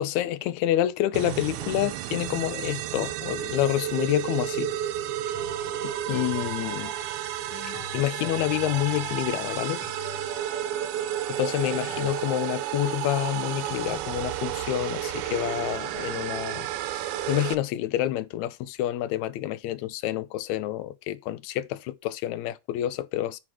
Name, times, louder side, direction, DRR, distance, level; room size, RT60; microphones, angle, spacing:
voice 1, 0.0-4.7 5.8-6.9 7.5-9.8 11.4-17.0 17.3-23.4, left 14 dB, 80° left, 1.8 m, -28 dB
sound 1, 1.1-17.5, right 12 dB, 85° right, 2.0 m, -32 dB
sound 2, 5.3-15.1 15.8-15.9, left 6 dB, 55° left, 2.0 m, -45 dB
5.9 x 4.7 x 6.1 m
omnidirectional pair, 3.5 m